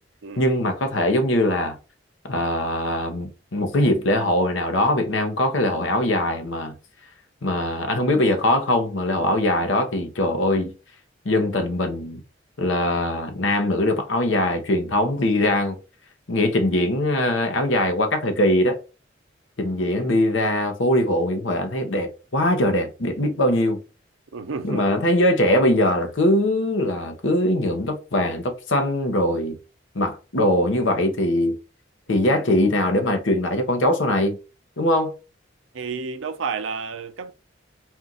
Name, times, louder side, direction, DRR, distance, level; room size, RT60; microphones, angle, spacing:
voice 1, 0.4-1.8 2.2-6.7 7.4-10.7 11.2-12.2 12.6-15.8 16.3-18.8 19.6-23.8 24.6-29.6 29.9-31.6 32.1-34.4 34.8-35.1, left 1 dB, 75° left, 0.9 m, -21 dB
voice 2, 24.3-25.0 35.7-37.3, right 5 dB, 85° right, 0.6 m, -31 dB
4.4 x 2.4 x 3.9 m
head